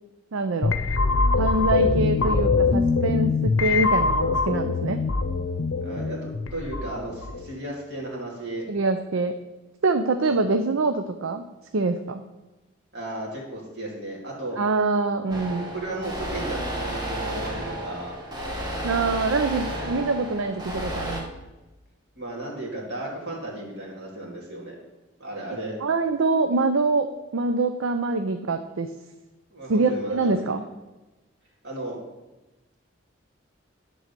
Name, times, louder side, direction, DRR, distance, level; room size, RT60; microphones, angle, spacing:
voice 1, 0.3-0.7 1.4-5.0 8.7-9.3 9.8-11.4 11.7-12.2 14.6-15.7 18.8-21.3 25.8-28.9 29.7-30.6, right 3 dB, 90° right, 7 dB, 0.5 m, -24 dB
sound 1, 0.6-7.5, left 4 dB, 85° left, 0.7 m, -23 dB
voice 2, 5.8-8.7 10.2-10.4 12.9-14.6 15.5-18.1 22.2-24.7 25.2-25.8 29.5-30.5 31.6-32.0, right 1 dB, 55° right, -3 dB, 2.4 m, -34 dB
sound 2, 15.3-21.2, right 1 dB, 20° right, 1.3 m, -32 dB
11.0 x 3.9 x 6.8 m, 1.1 s
head